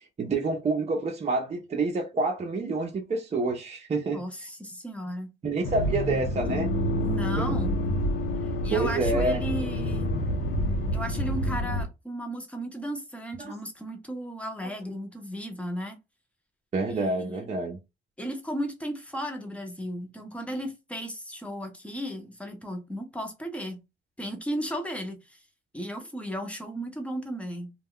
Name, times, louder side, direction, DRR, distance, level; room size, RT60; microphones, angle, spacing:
voice 1, 0.2-4.2 5.4-6.7 7.4-7.5 8.7-9.4 13.4-13.5 16.7-17.8, right 3 dB, 35° right, 0.7 m, -28 dB
voice 2, 4.1-5.3 7.0-7.7 8.6-10.1 10.9-16.0 16.9-17.5 18.2-23.8 24.2-25.4 25.7-27.7, equal, 5° left, 0.8 m, -35 dB
Accelerating revving vroom, 5.6-11.9, equal, 85° left, 0.7 m, -28 dB
2.3 x 2.1 x 3.7 m
cardioid pair, 90°, 20 cm